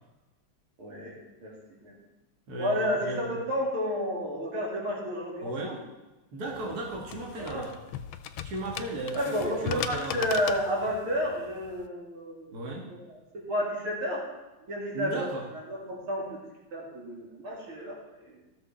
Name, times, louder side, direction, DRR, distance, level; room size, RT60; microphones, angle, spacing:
voice 1, 0.8-1.1 1.4-1.9 2.6-5.8 7.4-7.6 9.1-14.2 14.7-15.3 15.5-16.4 16.7-18.4, equal, 75° right, -4 dB, 3.4 m, -31 dB
voice 2, 2.5-3.4 5.4-5.8 6.3-7.7 8.4-10.3 12.5-12.9 14.9-15.5, right 2 dB, 45° right, -2 dB, 2.1 m, -36 dB
sound 1, 6.5-11.9, left 10 dB, 80° left, 1.4 m, -38 dB
15.0 x 6.4 x 4.2 m, 1.1 s
omnidirectional pair, 2.3 m